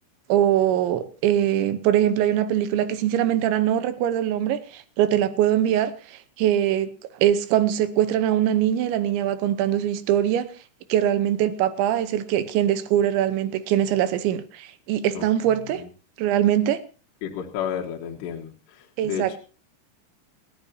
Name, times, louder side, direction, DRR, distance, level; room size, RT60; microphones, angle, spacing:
voice 1, 0.3-6.9 7.2-10.5 10.9-15.8 16.2-16.8 19.0-19.4, right 11 dB, 80° right, 3.2 m, -22 dB
voice 2, 17.2-19.4, left 8 dB, 70° left, 3.3 m, -32 dB
28.5 x 9.9 x 2.7 m
omnidirectional pair, 5.5 m